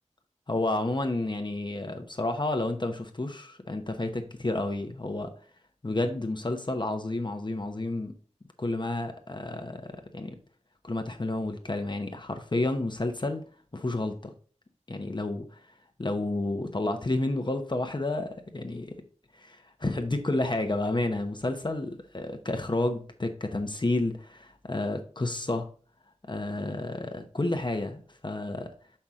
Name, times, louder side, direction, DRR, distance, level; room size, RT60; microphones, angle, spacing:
voice 1, 0.5-5.3 5.8-8.1 8.6-10.4 10.8-13.4 13.7-14.3 14.9-15.6 16.0-19.0 19.3-25.7 26.3-28.7, left 2 dB, 40° left, 6 dB, 0.9 m, -30 dB
5.9 x 5.5 x 3.6 m, 0.41 s
wide cardioid pair, 50°, 12 cm